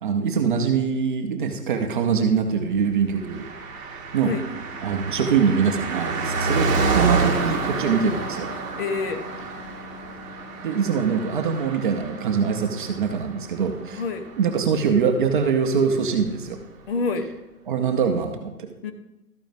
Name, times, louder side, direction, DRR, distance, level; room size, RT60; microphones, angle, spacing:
voice 1, 0.0-4.3 4.8-8.5 10.6-14.0 14.4-16.6 17.7-18.7, right 6 dB, 30° right, 4 dB, 0.7 m, -23 dB
Car passing by, 3.2-15.0 15.3-15.4, right 4 dB, 15° right, 1.6 m, -29 dB
voice 2, 8.8-9.2 13.9-14.3 16.9-17.3 18.8-18.9, left 4 dB, 35° left, 8 dB, 0.9 m, -27 dB
13.0 x 8.8 x 2.6 m, 0.97 s
hypercardioid pair, 140°, 48 cm